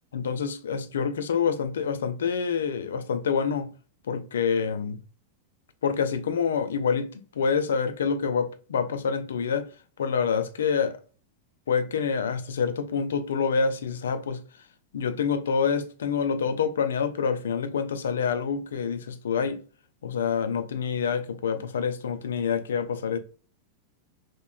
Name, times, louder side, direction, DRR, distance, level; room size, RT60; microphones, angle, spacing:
voice 1, 0.1-3.7 4.1-5.0 5.8-9.7 10.0-11.0 11.7-14.4 14.9-19.6 20.0-23.2, left 6 dB, 65° left, 0.4 m, -27 dB
2.9 x 2.8 x 2.3 m
figure-of-eight pair, 90°, 0 cm